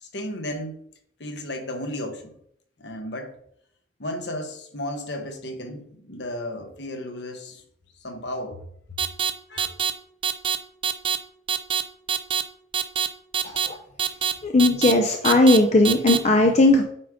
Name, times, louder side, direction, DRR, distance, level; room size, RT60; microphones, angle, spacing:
voice 1, 0.0-0.8 1.2-2.3 2.8-3.3 4.0-7.6 8.0-8.6 8.9-9.0 9.5-9.7, left 1 dB, 65° left, 5 dB, 1.3 m, -34 dB
sound 1, 9.0-9.3 9.6-9.9 10.2-10.6 10.8-11.2 11.5-11.8 12.1-12.4 12.7-13.1 13.3-13.7 14.0-14.3 14.6-14.9 15.2-15.6 15.8-16.2, right 8 dB, 30° right, 0.5 m, -24 dB
voice 2, 14.4-16.8, left 2 dB, 35° left, 3 dB, 0.6 m, -17 dB
8.5 x 5.0 x 3.7 m, 0.68 s
head